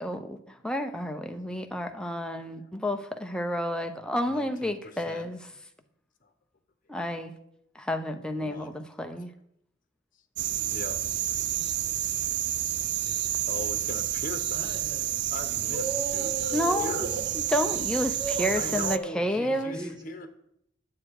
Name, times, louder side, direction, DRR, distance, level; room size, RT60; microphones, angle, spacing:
voice 1, 0.0-5.4 6.9-7.3 7.7-9.3 16.5-17.1 17.5-19.8, equal, 5° left, 5 dB, 0.7 m, -30 dB
voice 2, 4.3-5.3 8.4-8.8 10.7-11.6 12.1-12.5 12.8-12.9 13.5-14.7 15.3-15.9 16.1-17.1 18.5-20.3, left 2 dB, 45° left, 8 dB, 1.1 m, -40 dB
sound 1, 10.4-19.0, right 12 dB, 65° right, 0.4 m, -30 dB
voice 3, 14.5-17.3 17.6-18.8 19.7-19.9, right 3 dB, 25° right, -1 dB, 2.3 m, -37 dB
9.6 x 7.7 x 4.8 m, 0.75 s
head